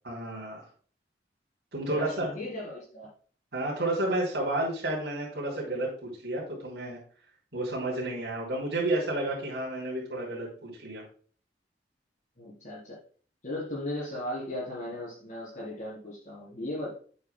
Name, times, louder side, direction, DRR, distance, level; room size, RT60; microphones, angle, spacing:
voice 1, 0.0-0.6 1.7-2.3 3.5-7.0 7.5-11.0, right 2 dB, 80° right, -4 dB, 3.2 m, -31 dB
voice 2, 1.9-3.1 12.4-13.0 13.4-16.9, left 1 dB, 45° left, -7 dB, 3.7 m, -37 dB
9.1 x 8.2 x 2.2 m, 0.44 s
head